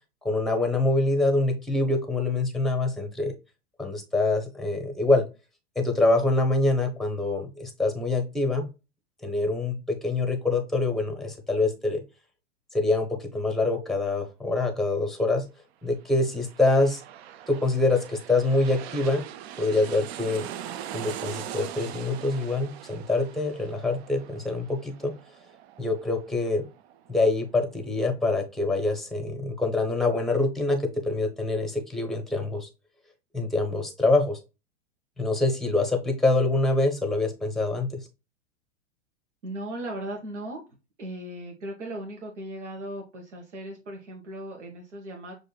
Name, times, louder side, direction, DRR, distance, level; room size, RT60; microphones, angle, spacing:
voice 1, 0.2-3.3 3.8-5.2 5.8-8.7 9.2-12.0 12.7-15.4 15.8-17.0 17.5-19.2 19.6-20.5 20.9-25.1 25.8-26.7 27.1-32.7 33.3-34.4 35.2-38.0, left 2 dB, ahead, 5 dB, 0.7 m, -25 dB
sound 1, 16.1-27.4 27.8-27.9, right 11 dB, 65° right, 0.5 m, -41 dB
voice 2, 39.4-40.6 41.0-45.3, right 1 dB, 85° right, 1 dB, 1.1 m, -37 dB
6.2 x 2.6 x 2.2 m, 0.29 s
hypercardioid pair, 110°, 35 cm